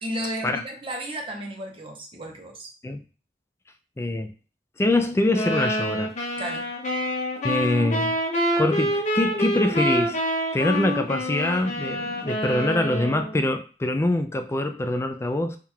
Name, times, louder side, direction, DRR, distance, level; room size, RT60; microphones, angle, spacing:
voice 1, 0.0-2.7 6.4-6.7, equal, 30° right, 0.8 m, -33 dB
voice 2, 4.0-4.3 4.8-6.1 7.4-8.2 8.6-10.2 10.5-15.6, left 2 dB, 15° left, 0.3 m, -24 dB
sound 1, 5.3-13.3, equal, 40° left, 1.0 m, -27 dB
3.7 x 2.3 x 4.4 m
head